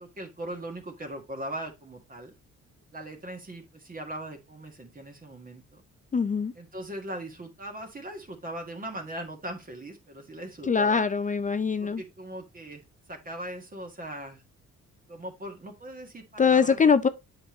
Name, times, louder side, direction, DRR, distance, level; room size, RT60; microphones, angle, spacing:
voice 1, 0.0-2.3 2.9-5.8 6.5-11.0 11.8-12.8 13.1-14.4 15.1-16.8, right 1 dB, 30° right, 1.7 m, -39 dB
voice 2, 6.1-6.5 10.7-12.0 16.4-17.1, left 5 dB, 25° left, 0.5 m, -22 dB
7.8 x 5.2 x 3.0 m
cardioid pair, 90°, 30 cm